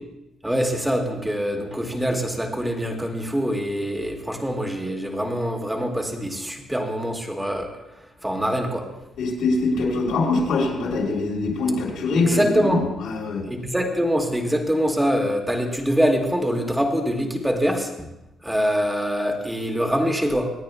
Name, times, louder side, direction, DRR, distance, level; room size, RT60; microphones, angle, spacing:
voice 1, 0.4-7.7 8.2-8.9 12.3-12.8 13.5-18.1 18.4-20.5, equal, 5° right, 2 dB, 2.2 m, -24 dB
voice 2, 9.2-13.4, left 3 dB, 80° left, -3 dB, 5.2 m, -23 dB
26.5 x 9.4 x 2.3 m, 0.92 s
cardioid pair, 90°, 0 cm